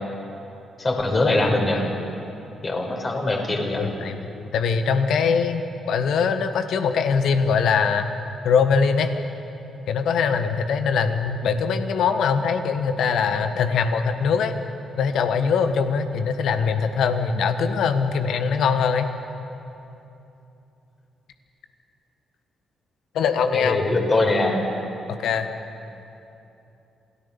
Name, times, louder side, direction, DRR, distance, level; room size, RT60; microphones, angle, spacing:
voice 1, 0.8-1.8 2.6-3.9 23.5-24.6, left 2 dB, 35° left, 0 dB, 5.9 m, -22 dB
voice 2, 3.8-8.1 8.4-9.1 9.9-14.5 15.0-19.1 23.1-23.8 25.2-25.5, left 6 dB, 65° left, 8 dB, 1.6 m, -22 dB
27.5 x 18.0 x 7.2 m, 2.9 s
hypercardioid pair, 40°, 0 cm